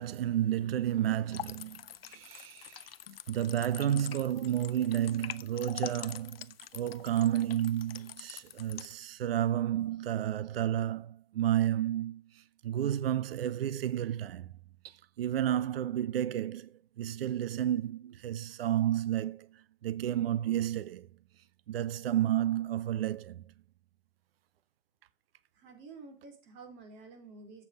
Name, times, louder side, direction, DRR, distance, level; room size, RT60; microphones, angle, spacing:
voice 1, 0.0-1.8 2.1-2.9 3.3-6.5 6.7-14.5 14.8-21.1 21.7-23.4, right 11 dB, 80° right, 0.6 m, -31 dB
sound 1, 1.3-9.0, left 11 dB, 80° left, 0.7 m, -45 dB
voice 2, 25.5-27.6, right 4 dB, 40° right, 3.8 m, -50 dB
8.3 x 7.1 x 5.1 m
hypercardioid pair, 120°, 29 cm